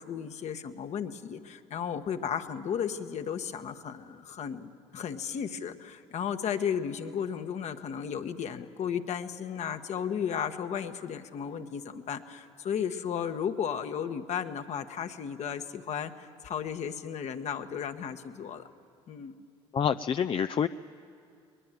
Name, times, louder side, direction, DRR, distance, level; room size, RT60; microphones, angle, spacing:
voice 1, 0.0-18.6 19.1-19.3, left 8 dB, 55° left, 8 dB, 1.3 m, -34 dB
voice 2, 19.7-20.7, left 8 dB, 40° left, 9 dB, 0.5 m, -27 dB
22.5 x 21.0 x 9.1 m, 2.5 s
supercardioid pair, 70°, 14 cm